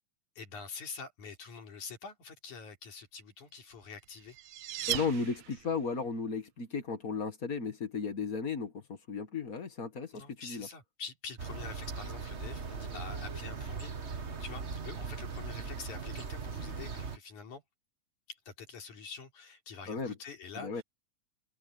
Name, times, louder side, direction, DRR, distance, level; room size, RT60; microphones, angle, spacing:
voice 1, 0.4-4.4 4.9-5.3 10.1-17.6 18.3-20.8, left 5 dB, 80° left, 5.0 m, -46 dB
sound 1, 3.8-5.9, right 12 dB, 75° right, 1.1 m, -38 dB
voice 2, 4.9-10.7 19.9-20.1 20.5-20.8, left 4 dB, 35° left, 1.5 m, -35 dB
sound 2, 11.4-17.2, right 5 dB, 40° right, 0.9 m, -39 dB
open air
omnidirectional pair, 3.4 m